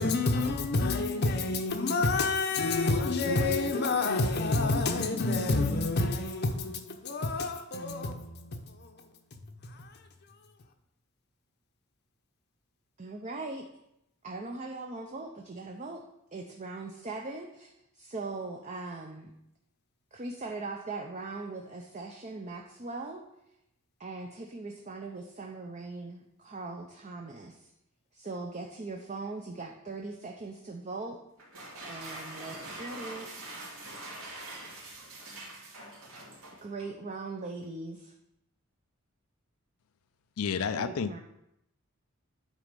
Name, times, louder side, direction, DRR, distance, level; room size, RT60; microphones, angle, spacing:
voice 1, 0.0-10.1, left 3 dB, 50° left, 0.7 m, -29 dB
voice 2, 13.0-13.7 14.2-16.0 16.3-17.7 17.9-19.3 20.1-23.3 24.0-27.7 28.1-31.2 31.8-33.5 35.1-35.4 36.6-38.1 40.7-41.2, right 3 dB, 30° right, 0.6 m, -40 dB
sound 1, 31.4-37.0, right 2 dB, 80° right, 2.5 m, -44 dB
voice 3, 40.4-41.2, left 6 dB, 80° left, 0.5 m, -30 dB
9.0 x 4.1 x 5.2 m
head